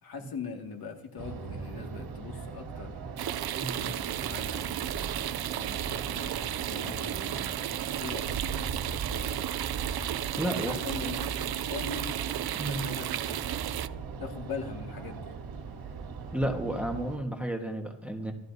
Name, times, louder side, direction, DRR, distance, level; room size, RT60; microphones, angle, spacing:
voice 1, 0.0-3.0 3.7-9.6 10.5-12.2 12.6-13.5 14.2-15.3, left 5 dB, 50° left, 2 dB, 2.2 m, -42 dB
sound 1, 1.2-17.2, right 5 dB, 75° right, 3.3 m, -39 dB
sound 2, 3.2-13.9, right 12 dB, 55° right, 0.5 m, -34 dB
voice 2, 10.4-10.7 12.6-12.9 16.3-18.3, right 1 dB, 5° right, 2 dB, 1.4 m, -32 dB
26.5 x 13.0 x 2.8 m, 0.82 s
cardioid pair, 150°, 47 cm